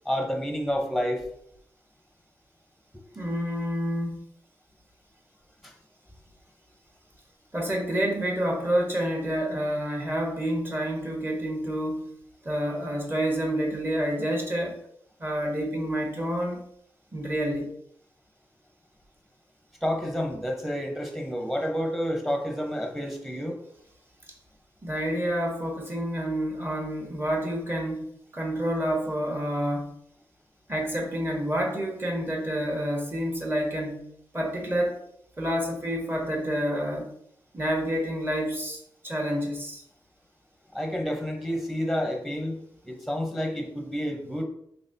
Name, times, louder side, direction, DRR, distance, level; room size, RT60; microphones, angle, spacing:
voice 1, 0.0-1.2 5.6-5.7 19.8-23.6 40.7-42.6 42.8-44.4, equal, ahead, 2 dB, 0.8 m, -29 dB
voice 2, 3.1-4.2 7.5-14.8 15.2-16.7 17.1-17.7 24.8-29.9 30.7-35.0 35.4-37.1 37.5-39.8, equal, 25° right, 0 dB, 1.2 m, -28 dB
4.0 x 3.1 x 2.7 m, 0.71 s
cardioid pair, 70°, 8 cm